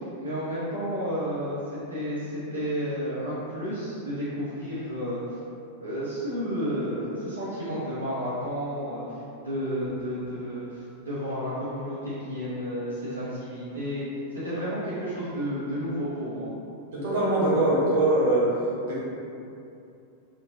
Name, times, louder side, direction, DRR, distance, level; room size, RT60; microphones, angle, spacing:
voice 1, 0.0-1.6 1.9-5.2 5.8-9.0 9.4-14.0 14.4-16.5, equal, 80° right, -12 dB, 0.8 m, -31 dB
voice 2, 16.9-18.5 18.8-19.0, right 1 dB, 55° right, -8 dB, 1.2 m, -22 dB
3.7 x 2.5 x 2.9 m, 2.7 s
figure-of-eight pair, 90°, 0 cm